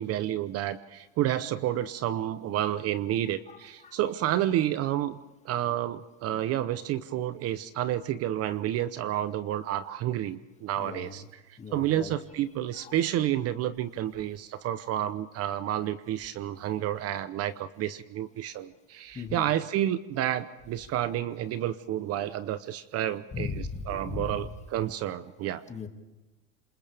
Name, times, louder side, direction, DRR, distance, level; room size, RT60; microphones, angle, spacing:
voice 1, 0.0-5.2 5.4-11.2 11.5-25.6, right 12 dB, 40° right, 14 dB, 0.9 m, -30 dB
voice 2, 3.5-4.0 10.7-11.2 11.6-12.1 12.7-12.9 14.2-14.3 16.4-16.6 19.1-19.5 23.3-24.5 25.7-25.9, left 5 dB, 20° left, 5 dB, 2.2 m, -38 dB
27.5 x 27.5 x 3.5 m, 1.1 s
supercardioid pair, 130°, 36 cm